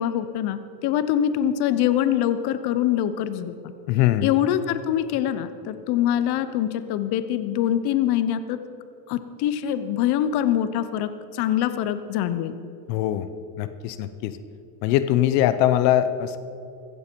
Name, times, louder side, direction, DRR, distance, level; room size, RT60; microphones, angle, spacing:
voice 1, 0.0-3.5 4.2-8.6 9.1-12.6, left 10 dB, 55° left, 12 dB, 0.9 m, -24 dB
voice 2, 3.9-4.3 12.9-13.3 13.6-14.4 14.8-16.4, left 12 dB, 85° left, 12 dB, 0.9 m, -22 dB
16.0 x 14.0 x 4.6 m, 2.7 s
cardioid pair, 140°, 47 cm